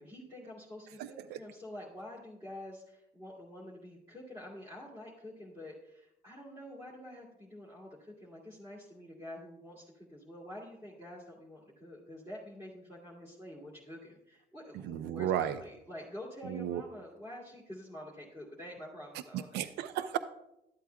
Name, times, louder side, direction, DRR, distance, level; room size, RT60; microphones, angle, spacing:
voice 1, 0.0-19.5, left 1 dB, 15° right, -8 dB, 2.3 m, -47 dB
voice 2, 1.0-1.4 14.8-15.6 16.4-16.8 19.3-20.2, right 11 dB, 80° right, 12 dB, 0.4 m, -34 dB
12.5 x 8.3 x 2.3 m, 0.84 s
cardioid pair, 110°, 17 cm